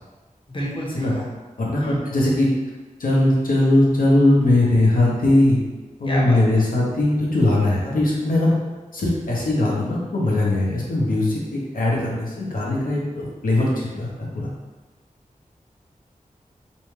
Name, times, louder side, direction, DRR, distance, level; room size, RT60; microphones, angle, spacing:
voice 1, 0.5-1.3 1.8-2.0 6.1-6.4, equal, 35° left, -5 dB, 0.7 m, -28 dB
voice 2, 1.6-2.5 3.0-5.6 6.0-8.5 8.9-14.5, left 1 dB, 90° left, -4 dB, 0.7 m, -20 dB
2.7 x 2.2 x 3.1 m, 1.2 s
wide cardioid pair, 80°, 14 cm